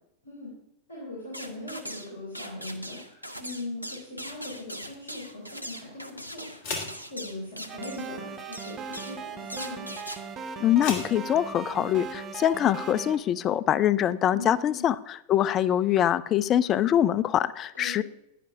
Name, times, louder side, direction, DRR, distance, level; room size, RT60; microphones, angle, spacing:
voice 1, 0.9-6.8 7.1-9.8 14.3-14.9 17.7-18.0, left 2 dB, 70° left, -6 dB, 3.3 m, -40 dB
sound 1, 1.3-2.1 2.3-8.1 8.5-9.2 9.5-10.2, equal, 90° left, 0.6 m, -40 dB
sound 2, 4.4-12.1, left 3 dB, 50° left, 1.5 m, -42 dB
sound 3, 7.7-13.2, right 5 dB, 30° right, 0.7 m, -38 dB
voice 2, 10.6-18.0, left 11 dB, 30° left, 17 dB, 0.3 m, -24 dB
11.0 x 9.3 x 2.6 m, 0.84 s
figure-of-eight pair, 90°, 0 cm